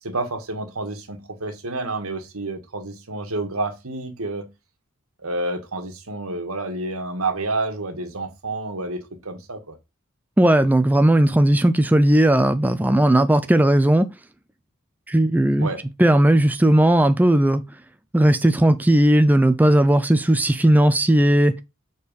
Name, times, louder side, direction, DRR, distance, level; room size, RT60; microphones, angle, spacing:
voice 1, 0.0-4.5 5.2-9.7 15.6-15.8, right 2 dB, 90° right, 1.7 m, -29 dB
voice 2, 10.4-14.1 15.1-15.7 16.0-17.6 18.1-21.6, right 1 dB, 10° right, 0.4 m, -17 dB
6.5 x 4.6 x 5.2 m
head